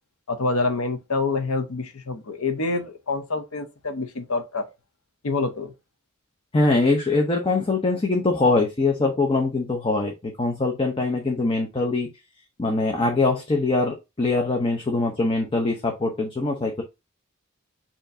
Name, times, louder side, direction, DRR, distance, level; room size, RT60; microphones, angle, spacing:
voice 1, 0.3-4.7 5.2-5.7, left 3 dB, 75° left, 0.8 m, -26 dB
voice 2, 6.5-12.1 12.6-16.8, left 3 dB, 25° left, 0.7 m, -23 dB
6.8 x 2.9 x 2.6 m
head